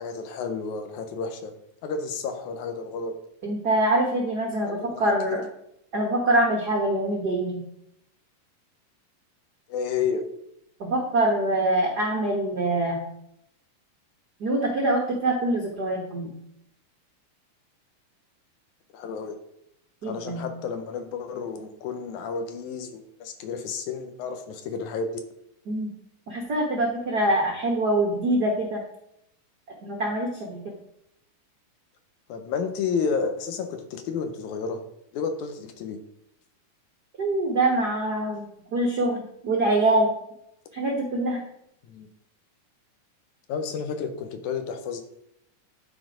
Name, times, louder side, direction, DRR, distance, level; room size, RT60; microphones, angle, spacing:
voice 1, 0.0-1.5 1.8-3.2 4.6-5.4 9.7-10.2 18.9-19.4 20.0-25.2 32.3-34.8 35.1-36.0 41.9-42.1 43.5-45.0, left 5 dB, 70° left, 7 dB, 2.2 m, -31 dB
voice 2, 3.4-5.4 5.9-7.6 10.8-13.0 14.4-16.3 20.0-20.5 25.7-25.9 26.3-28.8 29.8-30.6 37.2-40.1 40.7-41.4, right 1 dB, 75° right, -1 dB, 0.9 m, -24 dB
11.0 x 4.3 x 5.1 m, 0.76 s
omnidirectional pair, 3.9 m